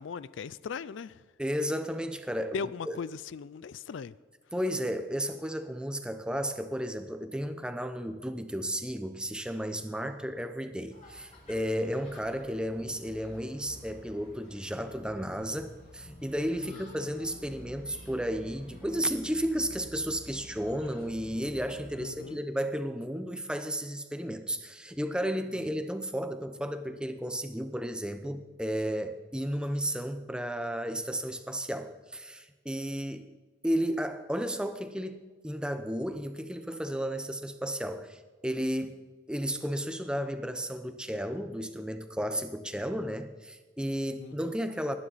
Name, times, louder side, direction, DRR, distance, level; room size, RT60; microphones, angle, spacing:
voice 1, 0.0-1.2 2.5-4.1 16.6-16.8 22.0-22.4 44.2-44.3, left 5 dB, 70° left, 0.4 m, -38 dB
voice 2, 1.4-3.0 4.5-33.3 33.6-39.0 39.3-45.0, equal, 5° right, 0.8 m, -33 dB
sound 1, 10.9-22.1, equal, 35° left, 5.0 m, -50 dB
20.0 x 9.9 x 4.1 m
head